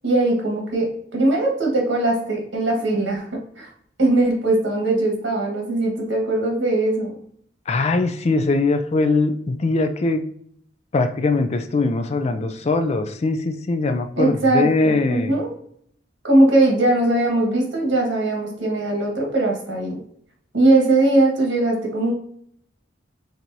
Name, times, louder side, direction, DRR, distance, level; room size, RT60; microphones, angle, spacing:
voice 1, 0.0-3.7 4.0-7.1 14.2-15.5 16.2-20.0 20.5-22.1, right 2 dB, 75° right, 0 dB, 1.5 m, -20 dB
voice 2, 7.7-10.2 10.9-15.3, left 3 dB, 35° left, 8 dB, 0.3 m, -21 dB
4.5 x 3.9 x 2.7 m, 0.67 s
head